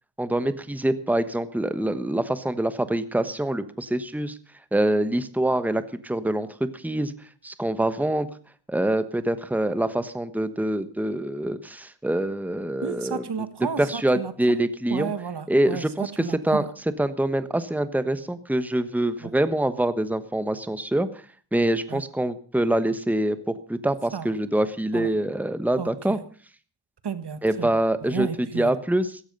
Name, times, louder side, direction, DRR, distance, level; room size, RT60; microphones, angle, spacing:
voice 1, 0.2-4.4 4.7-7.1 7.4-8.3 8.7-13.5 13.8-15.1 15.5-16.6 17.0-21.2 21.5-26.2 27.4-29.2, right 1 dB, 5° right, 12 dB, 1.2 m, -25 dB
voice 2, 12.8-14.3 14.9-16.7 19.2-19.3 21.9-22.0 24.1-24.3 24.9-25.1 25.8-26.2 27.0-27.7 28.1-28.8, right 6 dB, 70° right, 12 dB, 1.7 m, -32 dB
16.0 x 14.5 x 5.4 m, 0.41 s
wide cardioid pair, 90°, 41 cm